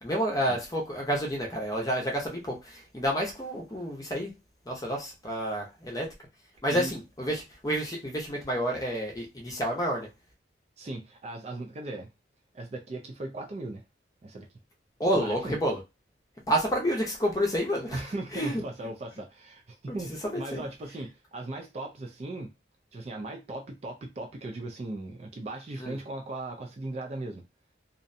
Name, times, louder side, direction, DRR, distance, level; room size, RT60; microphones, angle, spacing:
voice 1, 0.0-4.3 4.7-6.1 6.6-10.1 15.0-15.8 16.5-18.0 18.3-18.6 19.9-20.0 20.2-20.6 25.8-26.0, equal, 20° left, 0.6 m, -29 dB
voice 2, 10.8-12.1 12.5-13.8 14.2-14.5 15.1-15.6 17.9-22.5 22.9-27.4, right 2 dB, 35° right, 0.3 m, -38 dB
2.5 x 2.1 x 2.6 m
head